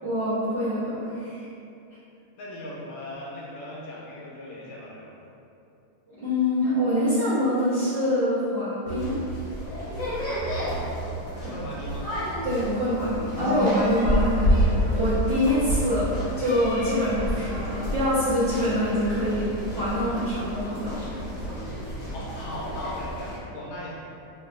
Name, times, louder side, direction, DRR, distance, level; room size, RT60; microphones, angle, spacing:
voice 1, 0.0-1.5 6.2-9.2 12.4-16.1 16.4-21.1, left 1 dB, 60° right, -17 dB, 0.6 m, -25 dB
voice 2, 2.4-5.3 10.1-11.0 11.4-12.1 22.1-23.9, left 1 dB, 80° left, -6 dB, 1.5 m, -38 dB
sound 1, 8.8-23.4, equal, 55° left, 1.0 m, -29 dB
3.5 x 2.4 x 2.3 m, 2.7 s
omnidirectional pair, 2.3 m